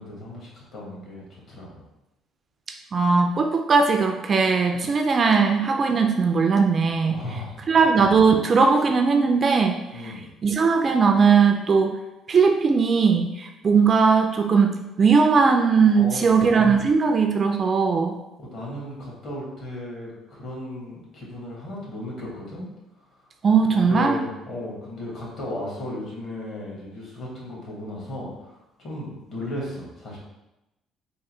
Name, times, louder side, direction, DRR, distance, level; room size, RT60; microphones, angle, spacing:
voice 1, 0.0-1.8 7.1-7.8 9.9-10.3 15.9-16.4 18.4-22.6 23.0-23.1 23.7-30.2, left 1 dB, 45° left, -4 dB, 1.5 m, -35 dB
voice 2, 2.9-7.2 7.7-10.1 10.4-11.9 12.3-18.2 23.4-24.2, right 5 dB, 30° right, 4 dB, 0.3 m, -19 dB
3.7 x 2.6 x 4.2 m, 0.94 s
cardioid pair, 160°, 0 cm